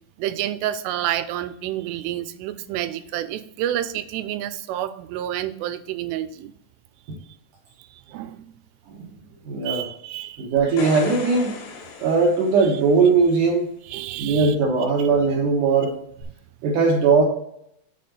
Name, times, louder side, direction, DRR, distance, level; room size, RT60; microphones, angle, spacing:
voice 1, 0.2-6.5 8.1-8.4 9.7-10.5 12.6-12.7 13.9-14.6, right 12 dB, 90° right, 12 dB, 2.7 m, -29 dB
voice 2, 9.5-9.9 10.4-11.5 12.0-13.7 14.2-15.9 16.6-17.2, right 4 dB, 70° right, 0 dB, 2.1 m, -19 dB
sound 1, 10.6-13.1 16.2-16.3, left 5 dB, 85° left, 3.5 m, -36 dB
6.9 x 4.2 x 5.1 m, 0.73 s
omnidirectional pair, 4.8 m